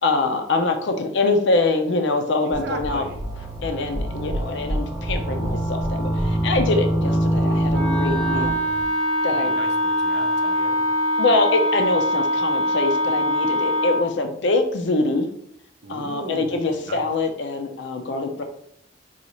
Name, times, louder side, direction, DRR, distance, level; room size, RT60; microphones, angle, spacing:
voice 1, 0.0-3.0 3.6-8.6 9.2-9.5 11.2-15.3 15.9-18.4, left 3 dB, 60° left, 5 dB, 0.5 m, -24 dB
voice 2, 2.4-3.2 9.3-10.8 15.8-17.1, right 2 dB, 60° right, 4 dB, 0.5 m, -37 dB
sound 1, 2.5-8.8, right 1 dB, 20° right, 0.9 m, -24 dB
Wind instrument woodwind instrument, 7.7-14.1, equal, 5° left, 0.6 m, -23 dB
4.0 x 2.4 x 3.0 m, 0.71 s
head